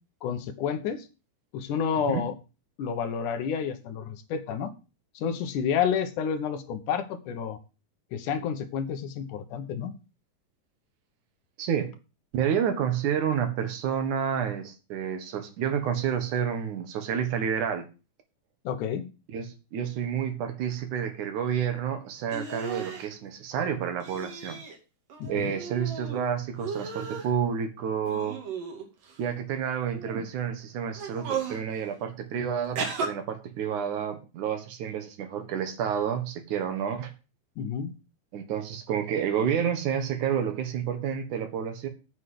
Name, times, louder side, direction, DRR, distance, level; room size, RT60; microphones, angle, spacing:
voice 1, 0.2-1.0 1.5-2.3 2.8-4.7 5.2-7.6 8.1-9.9 18.6-19.1 25.2-25.5 37.6-37.9, left 7 dB, 75° left, 9 dB, 2.6 m, -30 dB
voice 2, 2.0-2.3 11.6-11.9 12.3-17.9 19.3-24.6 25.3-28.4 29.2-37.1 38.3-41.9, right 8 dB, 70° right, 8 dB, 2.9 m, -29 dB
sound 1, 22.3-23.1 24.0-24.8 25.1-26.2 26.6-27.3 28.0-29.1 29.9-30.2 30.9-31.6 32.8-33.1, right 5 dB, 90° right, 3.9 m, -35 dB
8.8 x 6.3 x 7.7 m, 0.31 s
omnidirectional pair, 3.7 m